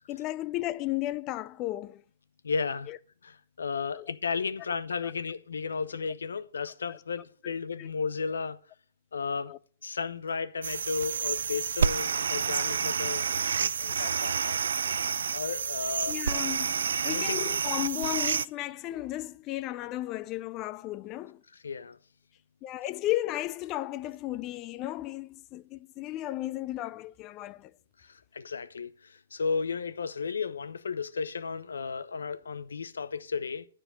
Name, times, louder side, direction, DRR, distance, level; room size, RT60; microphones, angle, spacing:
voice 1, 0.1-2.0 2.9-3.0 3.9-4.1 5.0-5.1 6.9-7.0 7.8-7.9 9.5-9.6 16.1-21.4 22.6-27.7, left 16 dB, 30° left, 0.4 m, -34 dB
voice 2, 2.4-2.9 3.2-8.6 9.1-9.5 9.8-13.3 13.6-14.6 15.3-16.2 17.0-17.5 21.6-22.0 28.1-33.7, left 5 dB, 75° left, 0.8 m, -34 dB
sound 1, 10.6-18.5, right 6 dB, 70° right, 0.3 m, -29 dB
10.0 x 4.6 x 7.5 m
figure-of-eight pair, 115°, 0 cm